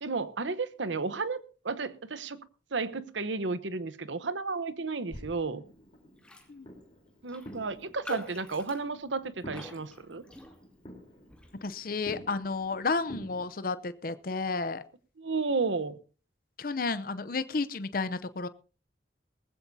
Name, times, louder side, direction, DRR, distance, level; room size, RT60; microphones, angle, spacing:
voice 1, 0.0-2.4 2.7-5.6 7.2-10.2 15.2-16.0, right 4 dB, 90° right, 14 dB, 0.9 m, -33 dB
sound 1, 5.1-13.4, equal, 30° left, 3.7 m, -49 dB
Raindrop, 6.2-6.5 6.8-6.9 7.3-10.9 11.3-11.6, left 1 dB, 5° left, 2.1 m, -45 dB
voice 2, 11.6-14.8 16.6-18.5, left 4 dB, 50° left, 14 dB, 0.7 m, -32 dB
19.0 x 15.5 x 2.7 m, 0.36 s
head